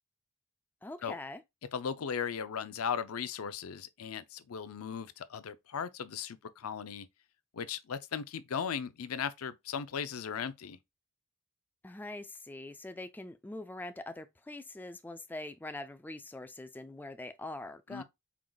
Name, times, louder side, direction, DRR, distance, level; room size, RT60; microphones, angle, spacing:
voice 1, 0.8-1.4 11.8-18.0, left 2 dB, 10° left, 0.3 m, -43 dB
voice 2, 1.7-7.1 7.5-10.8 17.9-18.0, left 7 dB, 90° left, 0.5 m, -37 dB
4.7 x 3.9 x 2.3 m
head